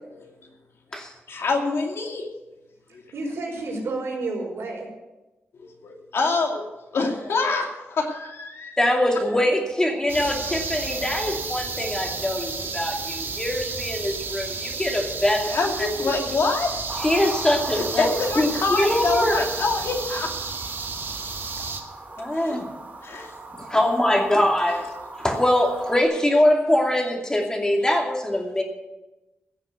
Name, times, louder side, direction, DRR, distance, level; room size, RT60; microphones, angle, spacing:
voice 1, 1.3-2.2 5.6-6.7 6.9-8.8 10.1-10.2 15.5-16.7 17.8-20.3 22.3-22.5 23.0-23.3, left 3 dB, 75° left, 2 dB, 2.5 m, -26 dB
voice 2, 3.1-4.9 23.1-23.3, right 2 dB, 85° right, -2 dB, 4.9 m, -30 dB
voice 3, 8.8-16.1 16.9-18.0 18.4-19.5 22.2-22.7 23.6-28.6, left 1 dB, 15° left, 1 dB, 2.5 m, -23 dB
sound 1, 10.1-21.8, right 4 dB, 60° right, 1.7 m, -32 dB
sound 2, 16.9-26.0, right 2 dB, 40° right, 2.2 m, -40 dB
16.0 x 6.9 x 8.1 m, 1.1 s
wide cardioid pair, 125°, 4 cm